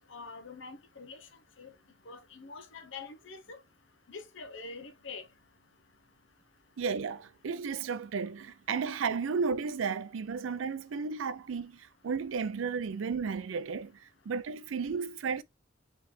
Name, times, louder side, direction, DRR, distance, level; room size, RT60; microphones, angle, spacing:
voice 1, 0.1-1.3 1.6-1.7 2.0-3.6 4.1-5.3, left 4 dB, 85° left, 0.9 m, -45 dB
voice 2, 6.8-15.4, right 5 dB, 90° right, 0.4 m, -33 dB
4.8 x 3.2 x 3.2 m
head